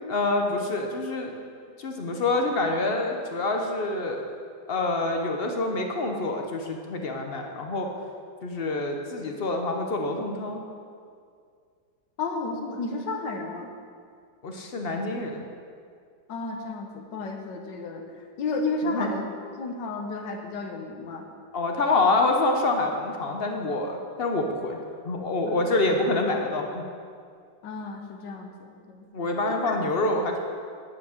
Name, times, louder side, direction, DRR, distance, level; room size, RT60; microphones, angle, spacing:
voice 1, 0.1-1.3 1.8-4.2 4.7-7.9 8.4-10.6 14.4-15.4 18.8-19.2 21.5-24.8 25.0-26.8 29.1-30.4, left 2 dB, 50° left, 3 dB, 0.7 m, -26 dB
voice 2, 12.2-13.7 16.3-18.0 18.4-19.3 19.6-21.3 25.4-25.8 27.6-29.1 29.4-29.8, left 3 dB, 75° left, 3 dB, 1.7 m, -32 dB
9.7 x 5.9 x 6.4 m, 2.2 s
omnidirectional pair, 2.0 m